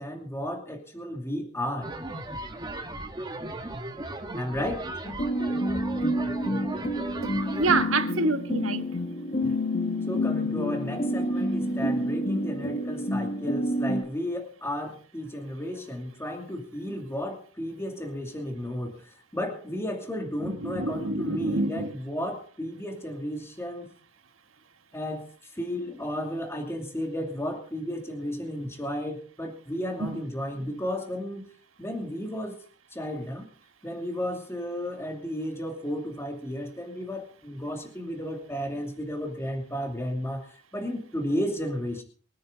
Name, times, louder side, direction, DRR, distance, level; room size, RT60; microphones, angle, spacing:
voice 1, 0.0-1.9 4.3-4.8 10.0-23.9 24.9-31.5 31.8-32.6 32.9-33.5 33.8-42.0, equal, 15° left, 2.7 m, -33 dB
sound 1, 1.8-7.8, right 1 dB, 20° right, 1.4 m, -36 dB
sound 2, 5.0-14.0, equal, 40° left, 1.6 m, -28 dB
voice 2, 7.6-8.8 9.4-9.5 20.5-21.9 30.0-30.2, right 3 dB, 80° right, 1.4 m, -27 dB
24.0 x 9.5 x 3.9 m
head